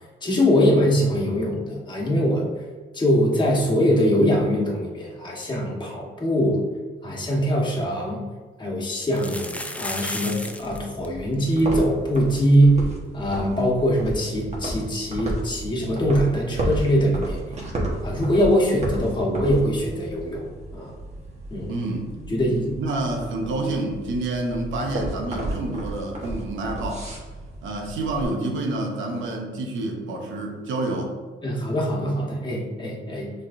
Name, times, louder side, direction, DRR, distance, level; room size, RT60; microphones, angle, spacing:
voice 1, 0.2-2.5 2.9-6.6 7.0-8.2 8.6-12.8 13.1-17.4 18.0-20.5 20.7-20.9 21.5-21.7 22.3-22.8 31.4-33.3, equal, 20° left, -3 dB, 1.2 m, -22 dB
sound 1, 7.4-7.5 7.8-7.9 9.0-10.8 11.0-11.1 11.3-11.6 12.1-12.2 12.5-12.6 14.7-14.8, left 1 dB, 5° left, 0.4 m, -33 dB
sound 2, 10.6-28.2, right 1 dB, 35° right, 1.2 m, -33 dB
voice 2, 21.7-22.1 22.8-27.1 27.6-31.2, right 2 dB, 75° right, 2 dB, 0.8 m, -28 dB
6.0 x 3.2 x 2.5 m, 1.3 s
cardioid pair, 90°, 20 cm